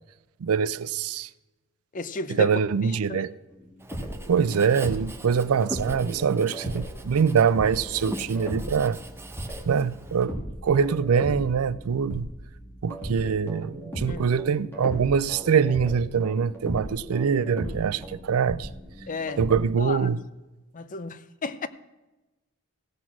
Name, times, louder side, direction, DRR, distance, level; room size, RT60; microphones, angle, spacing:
voice 1, 0.4-1.3 2.3-3.3 4.3-9.0 9.7-10.3 10.6-12.3 12.8-18.7 19.4-20.2, right 6 dB, 80° right, 0.4 m, -24 dB
voice 2, 1.9-2.5 3.1-3.2 14.1-14.2 19.1-19.4 19.8-20.1 20.7-21.7, left 4 dB, 35° left, 0.6 m, -33 dB
sound 1, 3.5-7.1 7.5-12.5 12.9-19.6, right 1 dB, 10° left, 2.5 m, -37 dB
Writing, 3.8-10.3, right 1 dB, 10° right, 0.8 m, -41 dB
sound 2, 6.8-13.0, right 1 dB, 55° left, 4.8 m, -48 dB
16.0 x 6.1 x 6.1 m
head